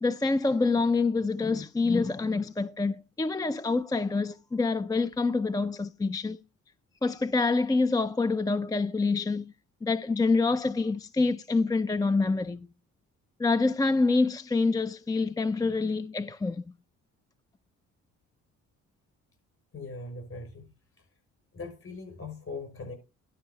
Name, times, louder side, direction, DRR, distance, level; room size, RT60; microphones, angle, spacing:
voice 1, 0.0-6.4 7.0-9.5 9.8-12.7 13.4-16.6, left 3 dB, 10° left, 0.4 m, -26 dB
voice 2, 19.7-21.1 21.5-22.9, left 3 dB, 50° left, 6.2 m, -41 dB
11.5 x 5.4 x 5.5 m
cardioid pair, 90°, 30 cm